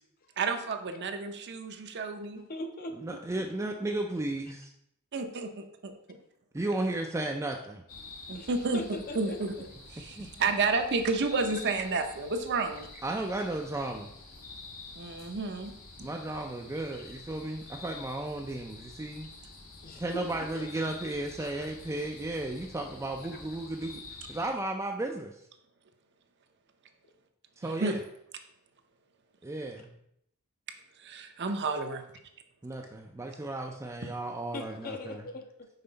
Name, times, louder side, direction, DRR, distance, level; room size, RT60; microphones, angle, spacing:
voice 1, 0.4-2.4 5.1-5.9 8.3-8.8 9.1-9.5 9.9-12.9 15.0-15.7 16.0-16.1 27.6-27.9 31.0-32.0, right 3 dB, 55° right, 6 dB, 0.6 m, -31 dB
voice 2, 2.3-3.2 8.3-9.5 13.4-13.5 16.7-16.8 19.8-20.7 21.4-21.5 23.3-23.4 34.5-35.7, left 1 dB, 45° left, 5 dB, 0.7 m, -41 dB
voice 3, 3.0-4.7 6.5-7.8 10.2-10.3 13.0-14.1 16.0-19.3 20.0-24.0 24.3-25.4 27.6-28.0 29.4-29.9 32.6-35.2, right 2 dB, 15° right, 2 dB, 0.4 m, -34 dB
sound 1, 7.9-24.5, left 3 dB, 90° left, 1.3 m, -48 dB
5.6 x 4.3 x 3.9 m, 0.74 s
head